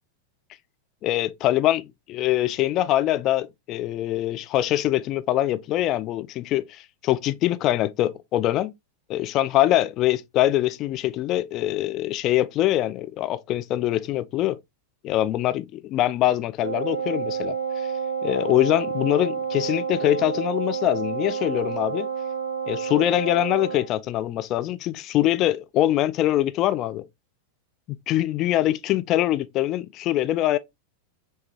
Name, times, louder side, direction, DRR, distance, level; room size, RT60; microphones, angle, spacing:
voice 1, 1.0-8.7 9.1-14.6 15.0-17.9 18.2-22.1 22.7-27.1 28.1-30.6, left 14 dB, 35° left, 0.3 m, -23 dB
Wind instrument woodwind instrument, 16.6-23.9, right 6 dB, 65° right, 0.3 m, -29 dB
6.1 x 2.3 x 2.7 m
figure-of-eight pair, 90°, 0 cm